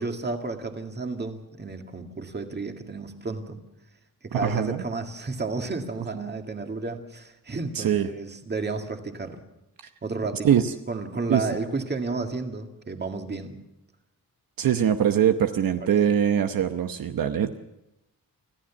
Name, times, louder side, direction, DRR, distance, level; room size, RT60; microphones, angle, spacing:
voice 1, 0.0-3.6 4.2-9.4 10.0-10.5 10.9-13.6 15.8-16.1, right 3 dB, 30° right, 5 dB, 2.0 m, -32 dB
voice 2, 4.3-4.8 7.7-8.1 10.4-10.7 11.3-11.5 14.6-17.6, right 9 dB, 70° right, 8 dB, 1.0 m, -22 dB
25.5 x 14.5 x 7.2 m, 0.91 s
wide cardioid pair, 140°, 35 cm